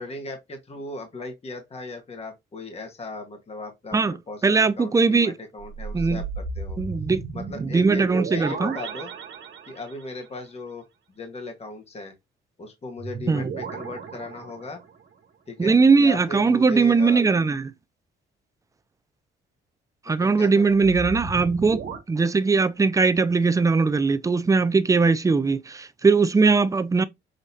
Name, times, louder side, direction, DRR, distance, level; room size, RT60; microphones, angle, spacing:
voice 1, 0.0-6.8 7.3-9.1 9.7-12.1 12.6-14.8 15.5-17.2 20.0-20.8, left 2 dB, 30° left, 1.5 m, -37 dB
voice 2, 4.4-5.3 5.9-6.2 6.8-7.2 7.6-8.7 13.3-13.5 15.6-17.6 20.1-27.0, right 4 dB, 15° right, 0.4 m, -20 dB
sound 1, 5.6-10.2 13.0-15.1 20.7-22.0, right 4 dB, 70° right, 1.3 m, -35 dB
6.3 x 3.0 x 2.8 m
cardioid pair, 90°, 20 cm